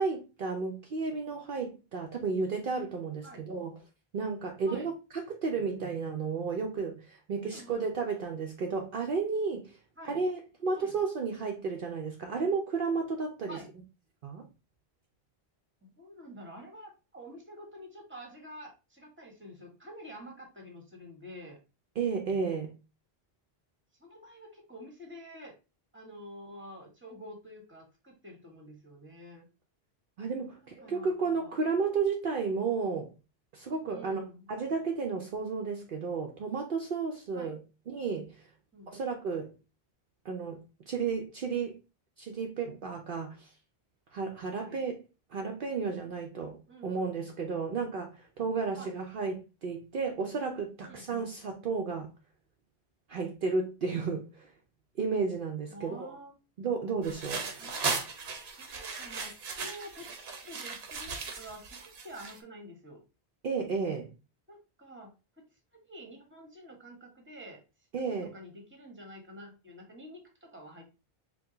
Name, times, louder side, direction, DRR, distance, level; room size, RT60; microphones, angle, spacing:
voice 1, 0.0-3.8 4.1-9.8 10.1-13.6 14.2-14.4 22.0-22.8 30.2-33.1 33.5-34.2 34.5-37.6 37.9-38.4 38.9-39.5 40.2-41.8 42.2-43.5 44.1-45.0 45.3-52.1 53.1-54.5 55.0-56.1 56.6-57.5 63.4-64.1 67.9-68.3, right 4 dB, 60° right, 0.7 m, -33 dB
voice 2, 7.4-7.9 10.0-10.2 10.7-11.0 13.5-13.7 15.8-21.6 24.0-25.5 25.9-29.5 30.8-31.6 33.8-34.5 37.3-37.6 38.7-38.9 44.5-44.8 46.7-47.2 48.7-49.0 50.8-51.3 55.7-56.3 57.6-57.8 58.6-60.1 60.4-63.0 64.5-65.5 65.9-67.6 68.3-70.8, equal, 10° right, 1.1 m, -48 dB
sound 1, 57.0-62.4, right 4 dB, 80° right, 1.0 m, -37 dB
4.5 x 2.2 x 3.7 m
omnidirectional pair, 1.1 m